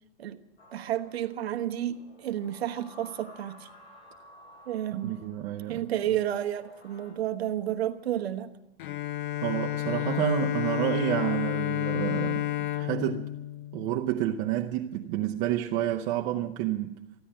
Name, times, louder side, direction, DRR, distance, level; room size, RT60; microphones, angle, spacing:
sound 1, 0.6-7.1, left 1 dB, 85° left, 6.2 m, -54 dB
voice 1, 0.7-3.7 4.7-5.2 5.7-8.5, right 11 dB, 80° right, 1.1 m, -31 dB
voice 2, 4.9-5.9 9.4-13.3 13.7-17.0, right 13 dB, 35° right, 0.7 m, -29 dB
Bowed string instrument, 8.8-14.5, left 13 dB, 50° left, 0.7 m, -31 dB
15.5 x 9.9 x 8.5 m
hypercardioid pair, 145°, 31 cm